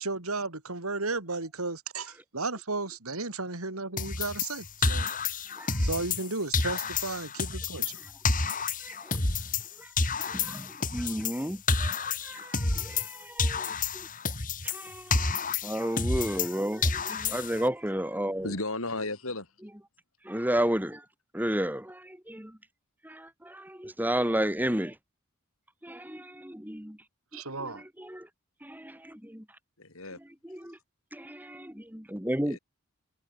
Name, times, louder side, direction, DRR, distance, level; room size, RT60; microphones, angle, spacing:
voice 1, 0.0-5.1 5.8-8.0 27.3-27.8, right 3 dB, 90° right, 4.3 m, -34 dB
sound 1, 4.0-6.3 6.5-9.7 10.0-13.1 13.4-16.5 16.8-17.7, left 4 dB, 40° left, 4.2 m, -29 dB
voice 2, 5.5-5.9 8.0-8.1 8.8-9.2 9.8-9.9 10.2-14.1 14.6-18.5 20.2-21.1 21.3-22.6 23.0-25.0 25.8-27.0 27.3-28.3 28.6-29.4 30.4-30.8 31.1-32.6, right 1 dB, 10° right, 3.6 m, -33 dB
voice 3, 18.4-19.5 29.8-30.2 32.4-32.6, left 2 dB, 75° left, 7.8 m, -34 dB
head